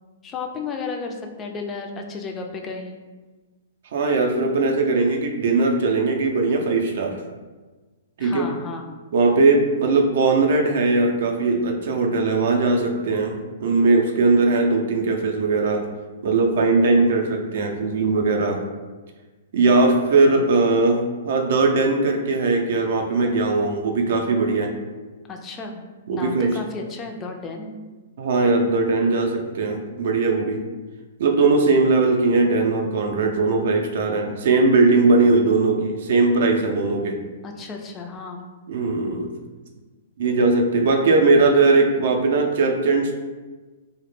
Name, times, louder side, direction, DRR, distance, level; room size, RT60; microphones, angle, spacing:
voice 1, 0.2-3.0 8.2-9.0 25.3-25.8 26.1-27.8 37.4-38.5, left 4 dB, 20° left, 2 dB, 0.3 m, -33 dB
voice 2, 3.9-7.2 8.2-8.5 9.1-15.9 16.2-18.6 19.5-24.7 26.1-26.6 28.2-30.6 31.2-37.2 38.7-39.3 40.2-43.2, right 3 dB, 65° right, 2 dB, 0.4 m, -19 dB
2.1 x 2.0 x 3.0 m, 1.3 s
hypercardioid pair, 135°, 0 cm